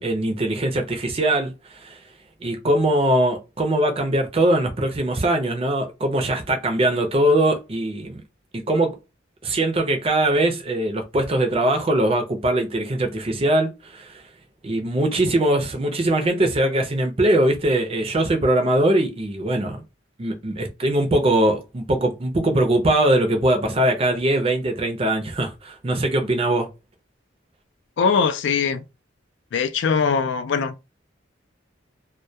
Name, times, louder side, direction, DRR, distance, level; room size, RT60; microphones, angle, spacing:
voice 1, 0.0-2.0 2.4-8.2 8.5-9.0 9.4-14.2 14.6-19.8 20.2-26.7, right 1 dB, 30° right, 0.5 m, -21 dB
voice 2, 28.0-28.8 29.5-30.8, left 5 dB, 65° left, 0.3 m, -21 dB
2.2 x 2.2 x 2.7 m
head